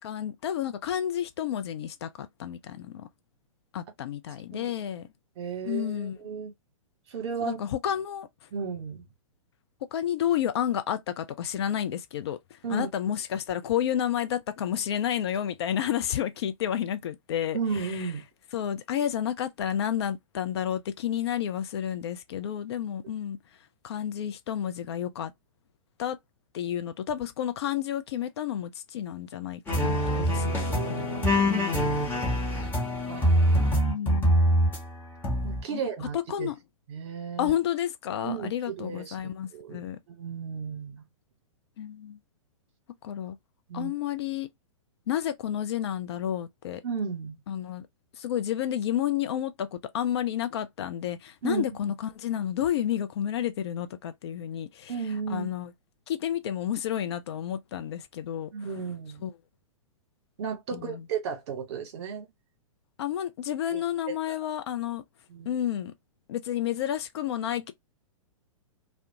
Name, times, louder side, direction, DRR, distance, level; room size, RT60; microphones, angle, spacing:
voice 1, 0.0-3.1 3.7-5.1 5.6-6.2 7.4-8.3 9.9-18.1 18.5-23.4 23.8-25.3 26.0-26.2 26.5-31.2 31.4-31.9 33.9-34.3 35.7-35.8 36.1-36.6 37.4-40.0 41.8-42.2 43.0-43.4 43.7-44.5 45.1-46.8 47.5-47.9 48.1-49.7 49.9-55.0 55.3-55.7 56.1-58.5 59.2-59.3 60.7-61.0 63.0-65.0 65.5-65.9 66.3-67.7, left 10 dB, 50° left, 0.4 m, -31 dB
voice 2, 5.4-6.5 7.1-7.6 8.5-9.0 12.6-12.9 17.5-18.2 30.5-31.7 32.5-32.7 33.1-33.8 35.4-36.5 36.9-37.5 38.2-39.2 39.5-41.0 43.7-43.9 46.8-47.4 51.4-51.6 54.9-55.5 58.5-59.2 60.4-62.3 63.7-63.8 64.1-64.3 65.3-65.5, right 6 dB, 50° right, 1.0 m, -34 dB
sound 1, 29.7-34.8 35.2-35.6, equal, 10° left, 1.0 m, -24 dB
2.3 x 2.1 x 2.8 m
figure-of-eight pair, 110°, 18 cm